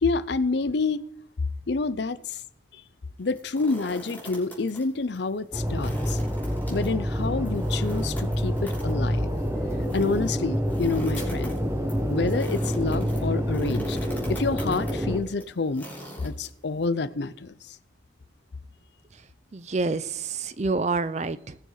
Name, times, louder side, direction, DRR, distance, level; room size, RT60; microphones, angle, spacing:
voice 1, 0.0-1.0 1.7-2.4 2.7-2.8 3.2-6.2 6.7-9.3 9.9-11.6 12.1-15.9 16.2-17.8, left 3 dB, 60° left, 0.6 m, -28 dB
sound 1, 3.2-4.8 5.1-5.2 5.6-16.8, equal, 10° left, 3.7 m, -44 dB
sound 2, 5.5-15.2, equal, 15° right, 1.1 m, -27 dB
Fire, 11.0-13.0, left 5 dB, 40° left, 3.6 m, -49 dB
voice 2, 19.5-21.6, right 3 dB, 35° right, 0.5 m, -28 dB
19.0 x 6.5 x 4.0 m
head